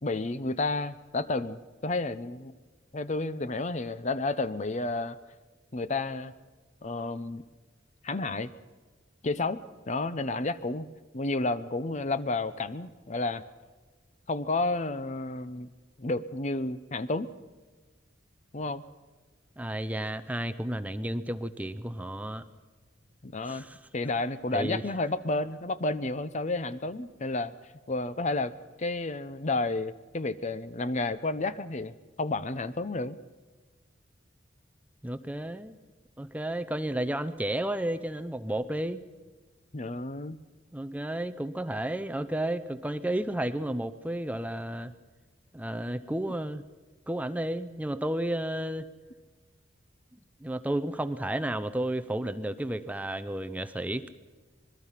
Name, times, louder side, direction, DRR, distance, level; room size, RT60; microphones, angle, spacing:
voice 1, 0.0-2.5 2.9-5.2 5.7-6.3 6.8-7.5 8.0-8.5 9.2-9.6 9.9-10.9 11.1-13.4 14.3-15.7 16.0-17.3 18.5-18.8 23.2-23.6 23.9-27.5 27.9-28.5 28.8-31.9 32.2-33.2 39.7-40.4, left 2 dB, 40° left, 14 dB, 0.7 m, -31 dB
voice 2, 19.6-22.4 23.5-23.8 24.5-24.8 35.0-35.8 36.2-39.0 40.7-44.9 45.5-46.6 47.1-48.9 50.4-54.1, right 1 dB, 10° right, 11 dB, 0.6 m, -32 dB
26.0 x 20.5 x 5.8 m, 1.3 s
head